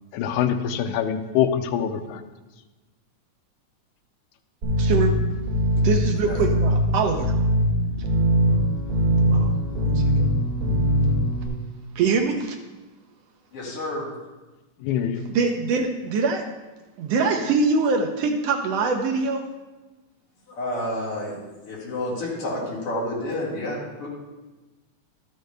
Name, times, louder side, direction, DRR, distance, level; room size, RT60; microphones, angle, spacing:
voice 1, 0.1-2.2 14.8-15.2, left 9 dB, 85° left, 7 dB, 2.0 m, -24 dB
sound 1, 4.6-11.5, equal, 30° right, 3.0 m, -21 dB
voice 2, 4.8-5.1 5.8-7.3 9.3-9.9 12.0-12.6 15.3-16.4 17.0-19.4, right 4 dB, 75° right, 4 dB, 1.6 m, -23 dB
voice 3, 9.1-9.5 13.5-14.0 20.5-24.1, left 1 dB, 50° left, -7 dB, 3.3 m, -30 dB
12.5 x 6.6 x 3.3 m, 1.2 s
omnidirectional pair, 3.3 m